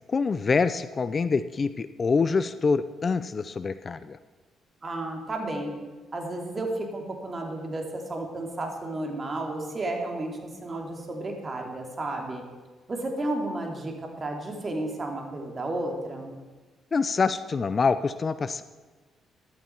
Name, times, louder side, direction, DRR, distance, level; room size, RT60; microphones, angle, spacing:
voice 1, 0.1-4.2 16.9-18.6, left 4 dB, 35° left, 13 dB, 0.5 m, -25 dB
voice 2, 4.8-5.7 6.1-12.4 12.9-16.3, right 2 dB, 30° right, 2 dB, 2.8 m, -32 dB
14.5 x 11.5 x 4.6 m, 1.4 s
cardioid pair, 90°, 0 cm